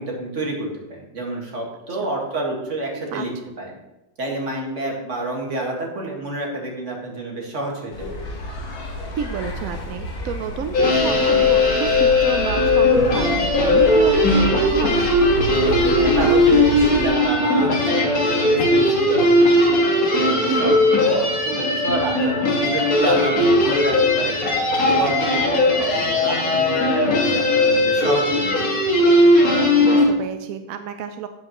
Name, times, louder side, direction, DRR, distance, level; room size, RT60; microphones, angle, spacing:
voice 1, 0.0-3.3 3.6-3.7 4.2-8.2 15.6-19.3 19.7-19.9 20.2-22.4 22.6-24.4 24.7-28.7, right 2 dB, 40° right, -1 dB, 2.1 m, -28 dB
sound 1, 7.9-17.0, left 1 dB, 75° left, 2.1 m, -31 dB
voice 2, 9.2-15.1 20.5-20.8 29.8-31.3, right 8 dB, 70° right, 8 dB, 0.8 m, -29 dB
sound 2, 10.7-30.0, left 1 dB, 50° left, 2.0 m, -18 dB
12.0 x 7.8 x 3.0 m, 0.96 s
omnidirectional pair, 2.0 m